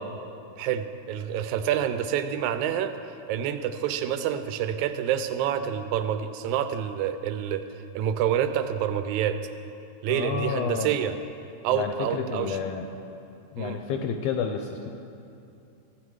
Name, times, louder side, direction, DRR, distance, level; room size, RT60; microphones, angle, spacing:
voice 1, 0.6-2.9 3.3-7.6 7.9-9.4 10.0-11.1 11.6-12.6 13.6-13.8, right 9 dB, 85° right, 10 dB, 2.0 m, -27 dB
voice 2, 10.1-10.9 11.7-12.9 13.5-14.9, left 7 dB, 80° left, 5 dB, 1.6 m, -30 dB
14.0 x 8.9 x 4.8 m, 2.7 s
omnidirectional pair, 3.4 m